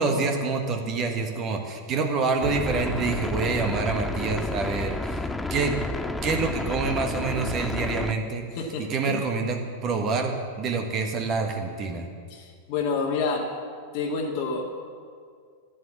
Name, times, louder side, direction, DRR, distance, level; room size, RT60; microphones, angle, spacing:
voice 1, 0.0-5.8 6.2-8.4 8.9-12.1, right 4 dB, 35° right, 4 dB, 1.5 m, -27 dB
sound 1, 2.4-8.1, left 2 dB, 10° left, 0.5 m, -31 dB
voice 2, 8.6-9.2 12.3-13.5 13.9-14.8, left 4 dB, 45° left, 0 dB, 1.6 m, -28 dB
12.5 x 10.0 x 7.2 m, 2.1 s
figure-of-eight pair, 90°, 0 cm